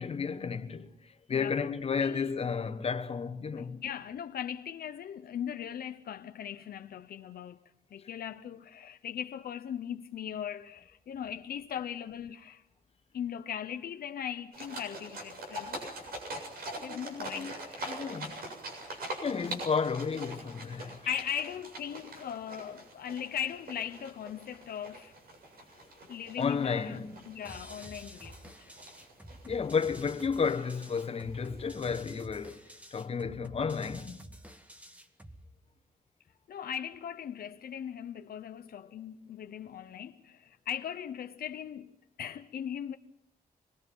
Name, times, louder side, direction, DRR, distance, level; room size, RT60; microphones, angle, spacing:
voice 1, 0.0-3.8 8.0-8.1 16.8-17.5 17.9-18.3 19.2-21.0 26.4-27.3 29.4-32.6 32.9-34.2, left 5 dB, 40° left, 1.4 m, -32 dB
voice 2, 1.3-2.3 3.6-7.6 7.9-12.6 13.1-16.0 16.8-17.9 20.7-25.1 26.1-27.0 27.3-28.5 36.5-41.9 42.2-43.0, left 9 dB, 75° left, 0.8 m, -39 dB
sound 1, 14.5-31.7, right 1 dB, 80° right, 7.4 m, -44 dB
sound 2, 27.4-35.4, equal, 10° right, 1.4 m, -50 dB
26.5 x 21.5 x 5.6 m
wide cardioid pair, 180°, 16 cm